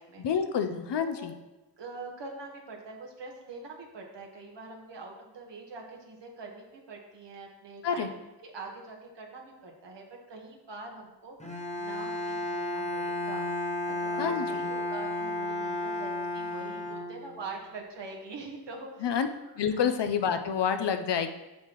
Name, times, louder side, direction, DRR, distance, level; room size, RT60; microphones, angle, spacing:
voice 1, 0.2-1.3 7.8-8.1 14.2-14.7 19.0-19.3 19.6-21.3, left 7 dB, 80° left, 8 dB, 0.7 m, -28 dB
voice 2, 1.0-1.3 1.8-19.2 19.7-19.8, right 3 dB, 85° right, 0 dB, 1.5 m, -44 dB
Bowed string instrument, 11.4-17.6, left 1 dB, 15° left, 1.0 m, -33 dB
7.5 x 7.1 x 3.1 m, 1.0 s
wide cardioid pair, 100°, 42 cm